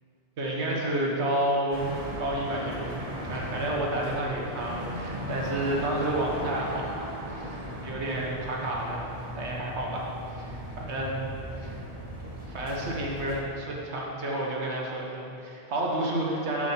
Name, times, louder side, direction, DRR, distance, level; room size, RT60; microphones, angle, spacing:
voice 1, 0.4-3.0 3.2-11.3 12.5-16.7, right 1 dB, 80° right, -3 dB, 1.6 m, -30 dB
sound 1, 1.7-13.4, equal, 35° right, 1.3 m, -37 dB
12.5 x 5.0 x 5.7 m, 2.7 s
omnidirectional pair, 1.1 m